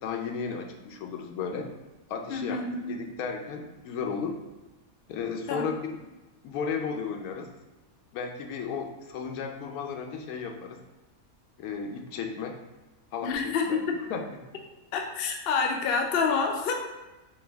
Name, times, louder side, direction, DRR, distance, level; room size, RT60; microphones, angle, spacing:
voice 1, 0.0-1.7 2.1-4.4 5.1-5.8 6.4-7.5 8.1-10.8 11.6-12.6 13.1-13.8 14.1-14.2, left 6 dB, 90° left, 3 dB, 1.1 m, -34 dB
voice 2, 2.3-3.0 5.5-5.6 13.2-14.0 14.9-16.7, left 5 dB, 60° left, 2 dB, 0.6 m, -28 dB
4.3 x 2.6 x 3.3 m, 1.1 s
omnidirectional pair, 1.5 m